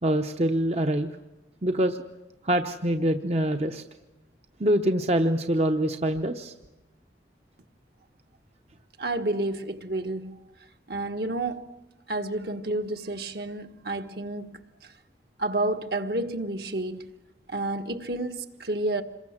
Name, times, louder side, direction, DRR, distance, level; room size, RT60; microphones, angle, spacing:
voice 1, 0.0-1.1 1.6-2.0 2.4-3.8 4.6-6.5, right 1 dB, 35° right, 0.9 m, -24 dB
voice 2, 9.0-10.4 10.9-11.7 12.1-14.9 15.4-17.1 17.5-19.0, right 2 dB, 60° right, 1.6 m, -30 dB
27.5 x 22.0 x 7.4 m
head